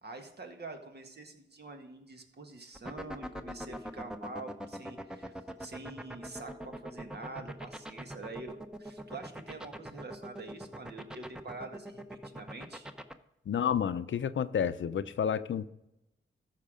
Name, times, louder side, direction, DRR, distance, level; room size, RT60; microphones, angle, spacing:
voice 1, 0.0-5.3 5.6-12.9, right 3 dB, 55° right, 1.7 m, -46 dB
sound 1, 2.7-13.1, equal, 5° right, 0.9 m, -41 dB
voice 2, 13.5-15.7, left 8 dB, 70° left, 0.6 m, -30 dB
14.0 x 5.9 x 5.1 m
cardioid pair, 60°, 21 cm